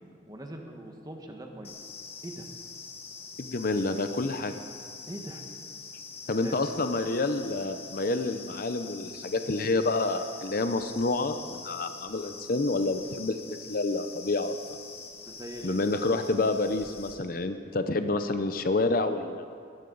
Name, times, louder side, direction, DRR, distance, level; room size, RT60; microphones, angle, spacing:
voice 1, 0.3-1.8 2.2-2.4 5.1-5.5 6.3-6.7 15.2-15.8, right 1 dB, 20° right, 3 dB, 1.4 m, -42 dB
sound 1, 1.6-17.1, left 4 dB, 35° left, 1.9 m, -44 dB
voice 2, 3.4-4.5 6.3-14.5 15.6-19.4, left 2 dB, 50° left, 9 dB, 0.7 m, -28 dB
20.5 x 14.5 x 4.0 m, 2.2 s
head